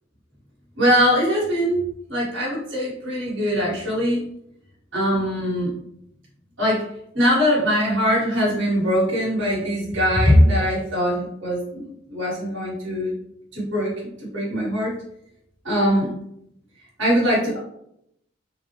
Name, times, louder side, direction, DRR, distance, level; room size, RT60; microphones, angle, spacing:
voice 1, 0.8-1.8 2.1-4.2 4.9-5.7 6.6-6.8 7.1-11.8 12.1-13.1 13.5-13.9 14.2-14.9 15.6-16.1 17.0-17.6, equal, 80° right, -5 dB, 1.4 m, -21 dB
3.6 x 2.1 x 3.0 m, 0.74 s
head